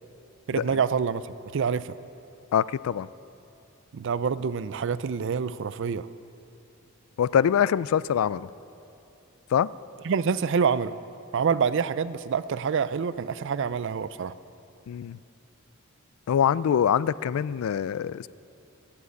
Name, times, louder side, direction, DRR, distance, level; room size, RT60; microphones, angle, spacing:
voice 1, 0.5-1.2 1.5-1.9 3.9-6.1 10.0-11.0 11.3-14.3, right 6 dB, 60° right, 16 dB, 0.4 m, -26 dB
voice 2, 2.5-3.1 7.2-8.5 9.5-9.7 14.9-15.2 16.3-18.3, left 8 dB, 70° left, 20 dB, 0.3 m, -24 dB
14.5 x 8.9 x 8.2 m, 2.7 s
head